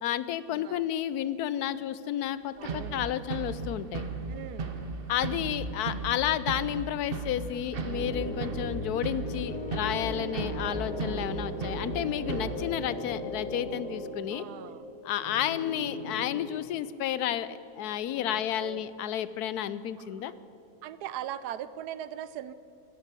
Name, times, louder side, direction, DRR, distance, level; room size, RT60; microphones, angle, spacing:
voice 1, 0.0-4.0 5.1-14.4 15.0-20.3, left 11 dB, 80° left, 16 dB, 1.2 m, -31 dB
voice 2, 0.5-0.8 2.6-3.2 4.3-4.8 10.1-10.6 14.3-14.9 18.1-18.8 20.0-20.3 20.8-22.5, right 11 dB, 85° right, 15 dB, 1.2 m, -41 dB
sound 1, 2.6-12.7, right 4 dB, 40° right, 1.1 m, -36 dB
sound 2, 7.8-13.1, left 2 dB, 65° left, 4.6 m, -42 dB
sound 3, 7.8-16.3, left 1 dB, 40° left, 3.3 m, -39 dB
16.0 x 10.0 x 8.3 m, 3.0 s
omnidirectional pair, 1.7 m